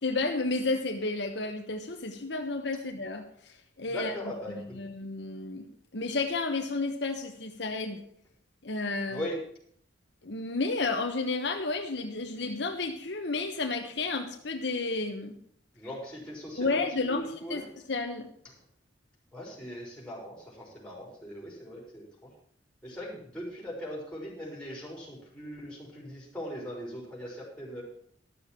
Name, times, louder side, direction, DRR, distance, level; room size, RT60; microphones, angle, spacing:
voice 1, 0.0-4.1 4.5-8.0 8.6-9.3 10.2-15.4 16.6-17.6 17.9-18.3, left 3 dB, 65° left, 4 dB, 1.1 m, -32 dB
voice 2, 3.8-4.8 9.1-9.4 15.8-16.8 17.1-17.6 19.3-22.3 22.8-27.8, equal, 5° left, -3 dB, 4.5 m, -40 dB
12.0 x 6.8 x 7.3 m, 0.64 s
head